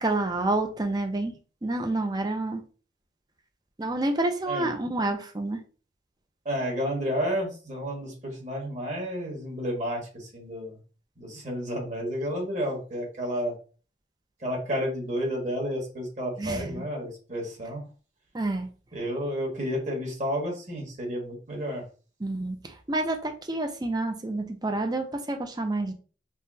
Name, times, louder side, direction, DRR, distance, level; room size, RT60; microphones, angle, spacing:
voice 1, 0.0-2.6 3.8-5.6 16.4-16.8 18.3-18.7 22.2-25.9, right 2 dB, 20° right, 0.5 m, -29 dB
voice 2, 6.4-10.8 11.2-13.5 14.4-17.8 18.9-21.8, equal, 40° right, 1.4 m, -31 dB
5.4 x 2.1 x 2.6 m
head